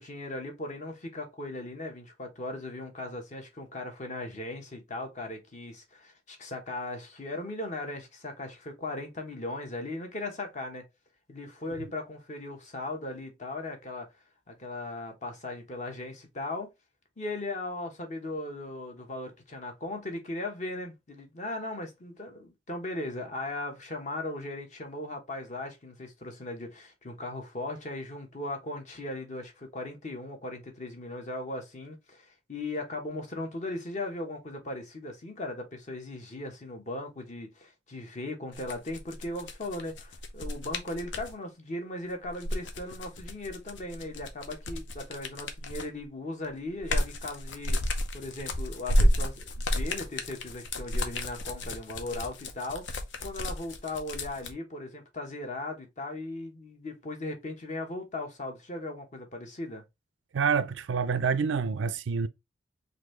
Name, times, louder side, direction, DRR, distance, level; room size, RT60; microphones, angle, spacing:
voice 1, 0.0-10.9 11.3-14.1 14.5-16.7 17.2-59.8, left 2 dB, 40° left, 1.0 m, -38 dB
sound 1, 38.5-41.3 42.2-46.0 46.4-54.5, left 1 dB, 75° left, 0.7 m, -31 dB
voice 2, 60.3-62.3, right 6 dB, 85° right, 0.4 m, -27 dB
4.0 x 2.6 x 3.1 m
head